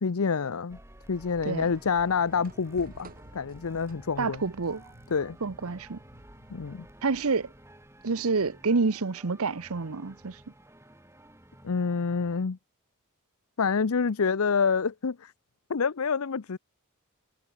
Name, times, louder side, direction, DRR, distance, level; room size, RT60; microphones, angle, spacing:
voice 1, 0.0-0.8 1.1-4.4 5.1-5.4 6.5-6.9 11.6-12.6 13.6-15.3 15.7-16.6, left 5 dB, 70° left, 0.6 m, -27 dB
sound 1, 0.7-12.5, right 1 dB, 10° right, 6.9 m, -53 dB
sound 2, 1.2-6.9, right 1 dB, 40° right, 4.6 m, -52 dB
voice 2, 4.2-4.8 5.4-6.0 7.0-7.5 8.0-10.4, right 4 dB, 70° right, 0.9 m, -28 dB
head